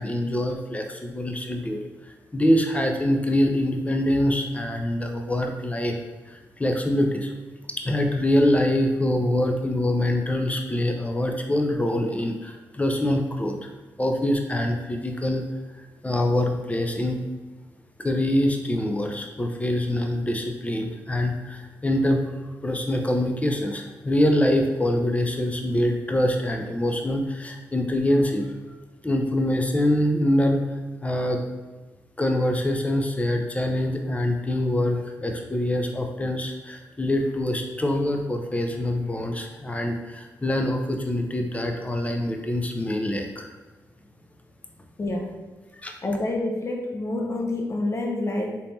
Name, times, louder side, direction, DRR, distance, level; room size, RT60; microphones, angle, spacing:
voice 1, 0.0-1.8 2.3-6.0 6.3-7.3 7.8-13.7 14.0-15.4 16.0-17.2 18.0-22.2 22.6-28.4 29.0-30.6 31.0-31.4 32.2-43.5 45.8-45.9, left 1 dB, 20° left, 3 dB, 0.7 m, -24 dB
voice 2, 45.0-45.4 46.0-48.6, left 2 dB, 45° left, 1 dB, 0.9 m, -27 dB
4.2 x 3.4 x 2.7 m, 1.2 s
supercardioid pair, 50°, 7 cm